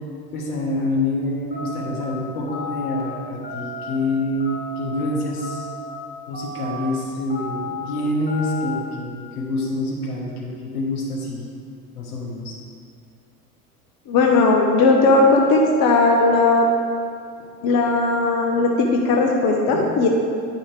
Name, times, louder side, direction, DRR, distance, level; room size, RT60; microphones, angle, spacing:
voice 1, 0.3-5.7 6.3-11.5 11.9-12.5 17.4-17.5 19.7-19.9, left 1 dB, 85° left, -1 dB, 1.5 m, -26 dB
sound 1, 1.5-2.0 2.5-3.0 3.4-4.0 4.4-4.9 5.4-5.9 6.3-6.9 7.3-7.8 8.3-8.8, left 3 dB, 20° left, 1.9 m, -33 dB
voice 2, 14.1-16.7 17.6-20.1, left 3 dB, 50° left, 1 dB, 1.1 m, -17 dB
10.0 x 5.6 x 3.3 m, 2.3 s
hypercardioid pair, 95°, 44 cm